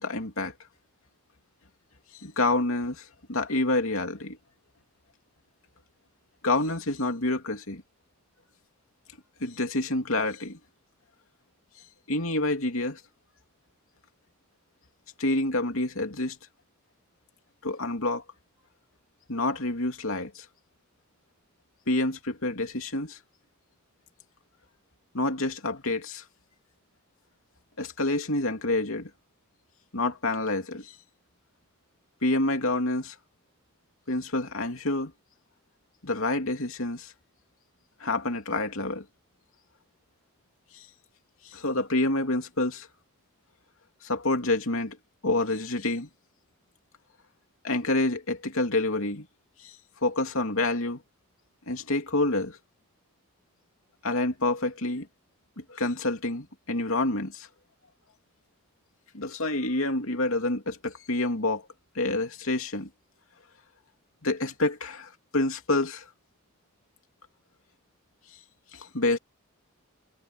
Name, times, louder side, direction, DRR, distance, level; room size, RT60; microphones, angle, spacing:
voice 1, 0.0-0.5 2.2-4.4 6.4-7.8 9.4-10.6 12.1-13.0 15.2-16.4 17.6-18.2 19.3-20.4 21.9-23.2 25.1-26.2 27.8-29.1 29.9-30.9 32.2-33.1 34.1-35.1 36.0-37.1 38.0-39.0 40.7-40.8 41.4-42.9 44.0-45.0 45.2-46.1 47.6-49.3 49.6-49.8 50.0-51.0 51.7-52.6 54.0-55.1 55.6-57.5 59.1-61.6 61.9-62.9 64.2-66.0 68.7-69.2, left 2 dB, 65° left, 2.9 m, -28 dB
head